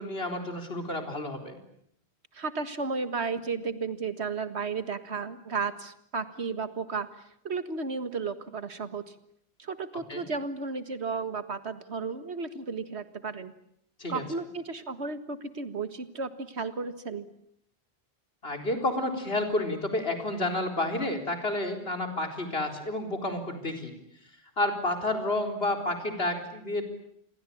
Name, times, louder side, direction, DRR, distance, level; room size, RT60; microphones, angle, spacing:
voice 1, 0.0-1.6 10.1-10.3 14.0-14.2 18.4-23.9 24.6-26.8, left 2 dB, 65° left, 5 dB, 4.5 m, -30 dB
voice 2, 2.3-7.1 7.4-9.1 9.6-13.5 14.1-17.3, right 4 dB, 85° right, 11 dB, 2.0 m, -33 dB
28.0 x 22.5 x 8.6 m, 0.72 s
omnidirectional pair, 1.1 m